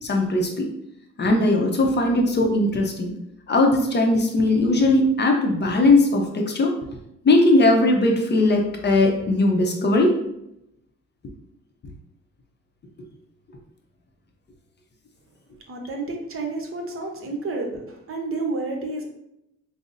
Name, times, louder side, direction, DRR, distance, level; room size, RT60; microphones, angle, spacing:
voice 1, 0.0-0.7 1.2-3.1 3.5-6.7 7.2-10.1, left 2 dB, 35° left, 2 dB, 0.6 m, -19 dB
voice 2, 15.7-19.1, right 3 dB, 45° right, 2 dB, 0.8 m, -30 dB
5.1 x 2.0 x 2.5 m, 0.82 s
cardioid pair, 90°, 30 cm